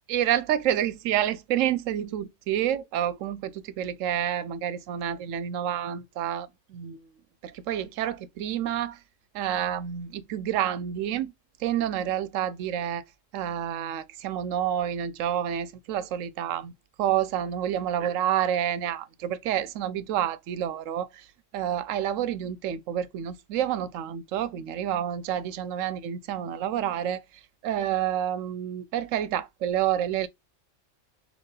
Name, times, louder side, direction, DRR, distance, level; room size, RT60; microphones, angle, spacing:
voice 1, 0.1-7.1 7.4-9.0 9.3-11.3 11.6-13.0 13.3-16.7 17.0-30.3, right 10 dB, 80° right, 0.9 m, -29 dB
4.4 x 2.9 x 3.2 m
omnidirectional pair, 1.3 m